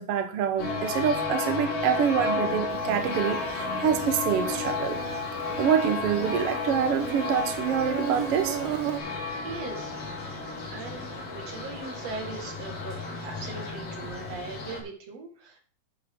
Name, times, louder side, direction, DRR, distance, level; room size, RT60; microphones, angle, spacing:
voice 1, 0.0-5.0 5.6-8.6, right 8 dB, 90° right, 1.3 m, -26 dB
sound 1, 0.6-14.8, left 3 dB, 45° left, 3.5 m, -32 dB
Insect, 2.7-9.0, right 11 dB, 70° right, 2.6 m, -37 dB
voice 2, 9.4-9.9 10.6-15.6, right 4 dB, 50° right, 2.8 m, -40 dB
9.7 x 9.6 x 3.8 m
omnidirectional pair, 4.3 m